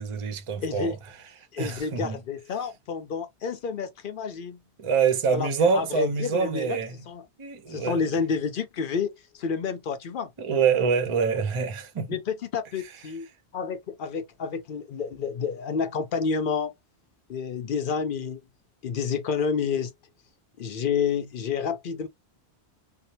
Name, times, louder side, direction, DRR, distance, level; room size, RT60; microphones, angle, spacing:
voice 1, 0.0-2.2 4.8-7.1 7.4-8.0 10.4-12.2 12.8-13.1, right 6 dB, 35° right, 0.6 m, -26 dB
voice 2, 0.6-0.9 1.5-4.6 5.3-5.5 5.7-6.8 7.1-7.2 7.7-9.1 9.3-10.3 12.1-13.3 13.5-16.7 17.3-18.4 18.8-19.9 20.6-22.1, left 6 dB, 60° left, 0.7 m, -29 dB
2.7 x 2.0 x 2.8 m
omnidirectional pair, 1.1 m